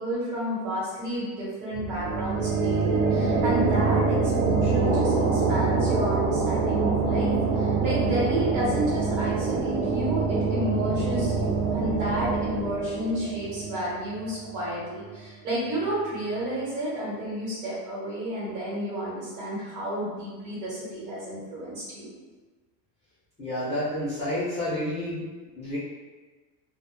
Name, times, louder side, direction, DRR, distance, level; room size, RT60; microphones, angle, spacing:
voice 1, 0.0-22.1, right 1 dB, 40° right, -7 dB, 1.0 m, -31 dB
sound 1, 1.7-15.1, right 4 dB, 75° right, 0.9 m, -25 dB
voice 2, 23.4-25.2 25.5-25.8, left 1 dB, 15° left, -12 dB, 0.4 m, -29 dB
2.1 x 2.0 x 2.9 m, 1.3 s
supercardioid pair, 145°, 45 cm